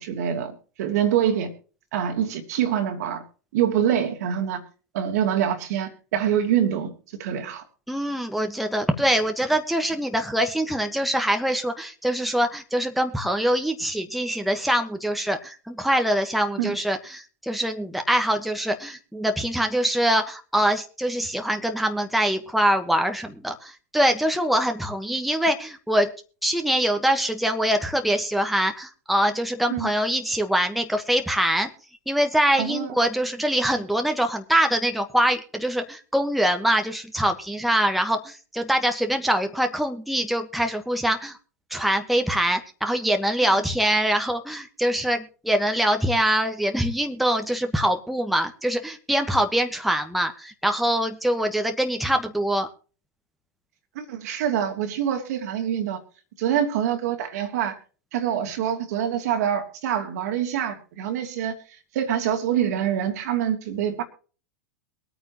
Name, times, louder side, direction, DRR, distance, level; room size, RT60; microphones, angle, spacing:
voice 1, 0.0-1.5 1.9-3.2 3.5-4.6 4.9-6.9 7.2-7.6 16.6-16.8 29.7-29.9 32.6-32.9 53.9-56.0 56.4-57.8 58.1-61.6 61.9-64.0, right 9 dB, 65° right, 5 dB, 2.6 m, -25 dB
voice 2, 7.9-26.1 26.4-31.7 32.1-41.4 41.7-52.7, right 1 dB, ahead, 5 dB, 1.4 m, -24 dB
23.0 x 9.1 x 3.1 m, 0.38 s
hypercardioid pair, 100°, 9 cm